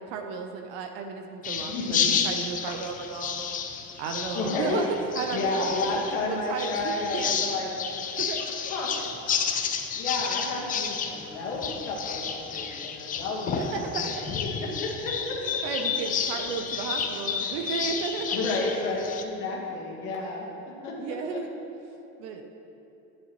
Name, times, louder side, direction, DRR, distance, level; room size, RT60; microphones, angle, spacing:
voice 1, 0.1-3.5 4.0-4.9 5.1-6.0 6.3-7.5 8.1-8.4 13.6-14.3 15.6-18.4 21.0-21.5 22.2-22.4, right 5 dB, 65° right, 4 dB, 0.8 m, -34 dB
sound 1, 1.4-19.2, left 7 dB, 20° left, 0.3 m, -31 dB
voice 2, 1.7-2.1 4.3-4.8 5.3-7.7 8.7-8.9 10.0-15.6 18.3-21.4, left 3 dB, 80° left, -4 dB, 1.6 m, -31 dB
9.3 x 7.8 x 3.0 m, 2.9 s
supercardioid pair, 110°, 43 cm